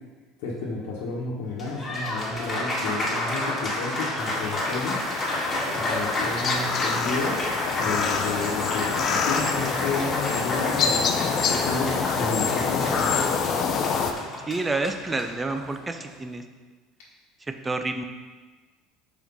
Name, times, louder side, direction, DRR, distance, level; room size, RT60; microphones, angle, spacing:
voice 1, 0.4-5.0 5.7-7.4 7.8-13.3, left 3 dB, 65° left, -6 dB, 1.3 m, -31 dB
Applause, 1.4-16.1, left 1 dB, 25° left, 2.2 m, -30 dB
sound 1, 4.2-14.1, left 6 dB, 50° left, 0.7 m, -27 dB
voice 2, 14.5-16.4 17.5-18.0, right 3 dB, 20° right, 7 dB, 0.7 m, -29 dB
5.7 x 4.5 x 5.6 m, 1.3 s
hypercardioid pair, 75°, 0 cm